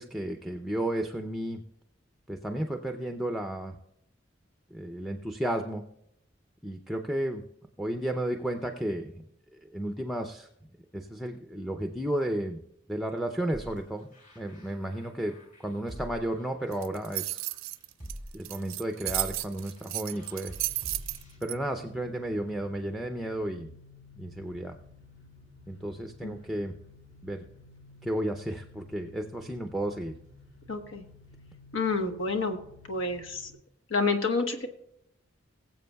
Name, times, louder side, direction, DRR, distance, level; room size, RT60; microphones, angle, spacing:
voice 1, 0.0-1.6 2.3-3.8 4.7-5.8 6.6-7.4 7.8-9.1 9.6-10.5 10.9-12.6 12.9-17.4 18.3-20.5 21.4-23.7 24.1-24.7 25.7-26.7 27.2-27.4 28.0-30.1, right 1 dB, ahead, 4 dB, 0.5 m, -33 dB
sound 1, 13.5-21.4, equal, 40° left, 3.0 m, -46 dB
sound 2, 16.7-21.5, right 17 dB, 85° right, 0.4 m, -33 dB
sound 3, 20.5-33.5, left 3 dB, 65° left, 2.6 m, -54 dB
voice 2, 30.7-31.0 31.7-32.6 32.9-33.5 33.9-34.7, left 3 dB, 85° left, 6 dB, 1.2 m, -29 dB
21.5 x 7.6 x 2.3 m, 0.77 s
head